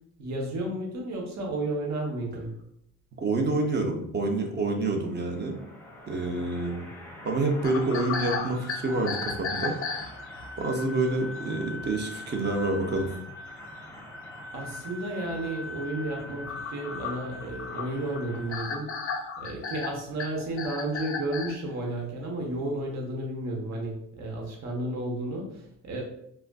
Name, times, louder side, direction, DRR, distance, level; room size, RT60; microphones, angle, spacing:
voice 1, 0.2-2.5 14.5-18.9 19.4-26.0, right 1 dB, 65° right, -1 dB, 0.9 m, -32 dB
voice 2, 3.2-5.6 6.1-6.9 7.2-9.8 10.6-13.1, right 2 dB, 35° right, 3 dB, 0.6 m, -28 dB
sound 1, 5.0-18.7, left 2 dB, 5° left, 0.7 m, -43 dB
sound 2, 7.6-10.6 11.4-11.5 11.8-11.9 12.5-12.6 12.9-13.4 14.0-14.1 14.4-14.5 15.3-15.4 15.8-21.6, left 4 dB, 45° left, 0.5 m, -35 dB
3.3 x 2.4 x 2.2 m, 0.72 s
cardioid pair, 90°, 30 cm